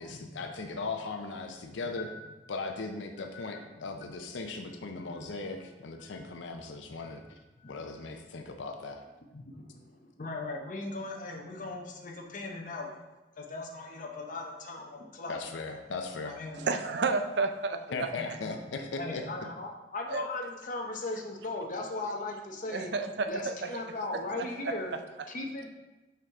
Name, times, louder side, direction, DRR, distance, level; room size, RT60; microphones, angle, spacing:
voice 1, 0.0-2.1 2.5-7.2 7.7-9.0 15.3-16.3 17.9-19.2, left 3 dB, 80° left, 5 dB, 0.5 m, -38 dB
voice 2, 2.0-2.3 3.3-3.4 4.1-4.2 5.2-5.3 6.0-6.3 7.0-8.0 9.3-13.0 13.4-15.4 16.2-16.7 17.9-18.6 19.0-22.9 23.3-24.9 25.3-25.7, left 2 dB, 45° left, 1 dB, 0.7 m, -38 dB
voice 3, 16.6-18.1 20.1-20.3 22.7-23.4, right 4 dB, 65° right, 8 dB, 0.4 m, -30 dB
5.8 x 4.6 x 3.6 m, 1.1 s
head